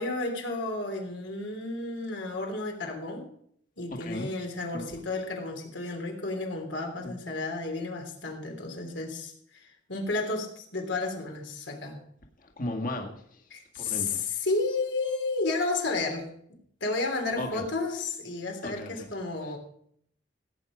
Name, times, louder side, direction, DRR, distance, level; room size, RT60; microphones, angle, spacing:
voice 1, 0.0-3.2 3.8-12.0 13.5-16.3 16.8-19.6, left 3 dB, 80° left, 3 dB, 3.4 m, -32 dB
voice 2, 3.9-4.3 4.7-4.9 7.0-7.2 12.4-13.4 13.7-14.3 17.4-17.6 18.6-19.1, left 1 dB, 45° left, 2 dB, 2.0 m, -36 dB
17.5 x 9.3 x 5.1 m, 0.66 s
head